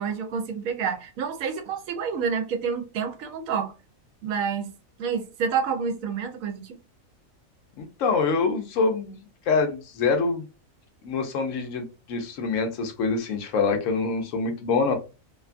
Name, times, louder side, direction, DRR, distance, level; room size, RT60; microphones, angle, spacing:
voice 1, 0.0-3.7 4.2-4.7 5.0-6.8, right 6 dB, 75° right, 1.0 m, -28 dB
voice 2, 7.8-9.2 9.5-10.4 11.0-14.9, left 4 dB, 70° left, 1.0 m, -25 dB
2.9 x 2.2 x 2.4 m
omnidirectional pair, 1.4 m